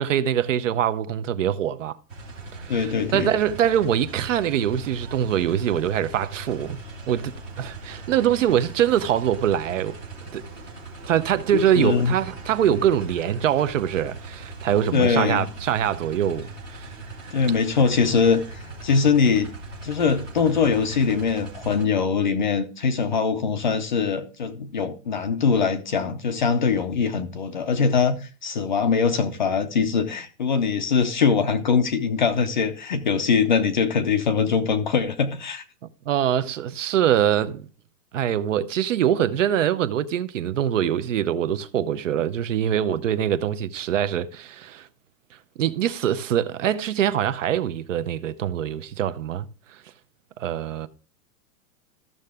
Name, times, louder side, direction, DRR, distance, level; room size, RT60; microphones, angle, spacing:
voice 1, 0.0-2.0 2.5-6.8 7.1-9.9 10.3-10.4 11.1-16.9 17.3-17.4 36.1-37.7 38.1-44.9 45.6-49.8 50.4-50.9, right 10 dB, 50° right, 0.7 m, -24 dB
sound 1, 2.1-21.9, right 2 dB, 10° right, 0.6 m, -40 dB
voice 2, 2.7-3.3 11.5-12.2 14.9-15.5 17.3-19.5 19.8-35.6, left 5 dB, 30° left, 0.5 m, -22 dB
13.5 x 6.7 x 3.5 m
supercardioid pair, 180°, 47 cm